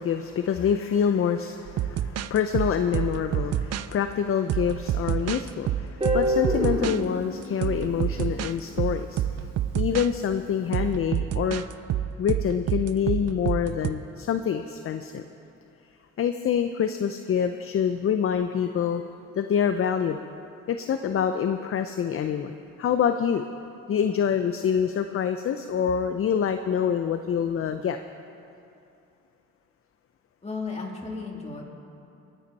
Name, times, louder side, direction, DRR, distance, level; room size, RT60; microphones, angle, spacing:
voice 1, 0.0-9.2 9.7-11.6 12.2-15.3 16.2-19.1 19.4-20.2 20.7-23.4 23.9-28.0, left 8 dB, 45° left, 8 dB, 0.6 m, -26 dB
sound 1, 1.7-3.9 4.5-7.0 7.6-8.5 8.8-10.1 10.7-13.9, right 10 dB, 60° right, 0.5 m, -28 dB
Guitar, 6.0-8.9, equal, 20° right, 3.3 m, -29 dB
voice 2, 30.4-31.6, left 4 dB, 20° left, -2 dB, 2.9 m, -34 dB
23.0 x 9.9 x 4.2 m, 2.7 s
cardioid pair, 90°, 30 cm